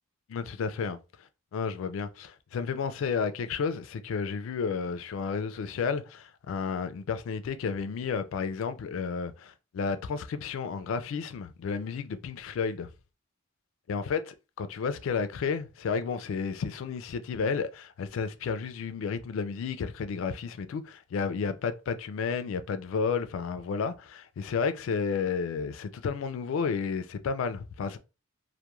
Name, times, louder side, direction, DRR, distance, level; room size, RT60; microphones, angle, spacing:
voice 1, 0.3-1.0 1.5-12.9 13.9-14.2 14.6-28.0, left 5 dB, 75° left, 0.3 m, -32 dB
2.3 x 2.1 x 2.9 m
head